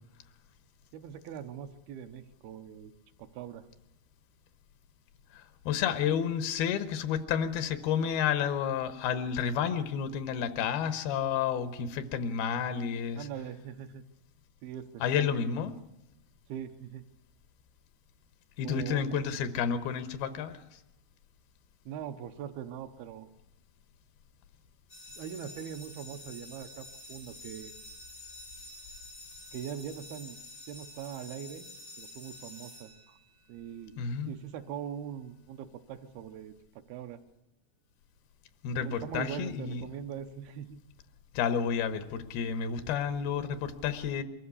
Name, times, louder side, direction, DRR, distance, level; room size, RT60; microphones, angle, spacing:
voice 1, 0.9-2.9 3.2-3.7 13.2-14.0 14.6-15.0 16.5-17.1 18.6-19.1 21.9-23.3 25.1-27.7 29.5-30.4 30.7-31.7 32.0-33.2 33.5-34.0 34.3-37.2 38.7-40.8, right 9 dB, 90° right, 8 dB, 2.9 m, -41 dB
voice 2, 5.3-13.3 15.0-15.8 18.6-20.5 34.0-34.3 38.6-39.8 41.3-44.2, left 7 dB, 90° left, 11 dB, 3.0 m, -30 dB
sound 1, 24.9-33.6, left 2 dB, 25° left, 7.1 m, -49 dB
23.5 x 14.0 x 8.4 m, 0.91 s
omnidirectional pair, 4.3 m